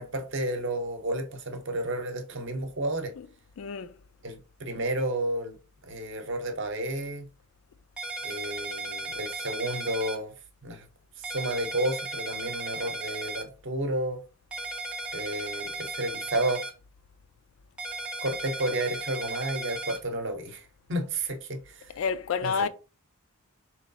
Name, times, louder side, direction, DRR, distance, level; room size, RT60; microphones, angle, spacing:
voice 1, 0.0-3.1 4.2-5.6 5.8-7.3 8.2-10.3 10.6-10.9 11.2-14.2 15.1-16.7 18.2-21.9 22.4-22.7, right 1 dB, 55° right, 0.8 m, -31 dB
voice 2, 3.6-3.9 22.0-22.7, left 5 dB, 65° left, 0.3 m, -29 dB
sound 1, 8.0-10.2 11.2-13.4 14.5-16.7 17.8-20.0, right 2 dB, 5° right, 0.5 m, -36 dB
3.8 x 3.0 x 2.7 m
head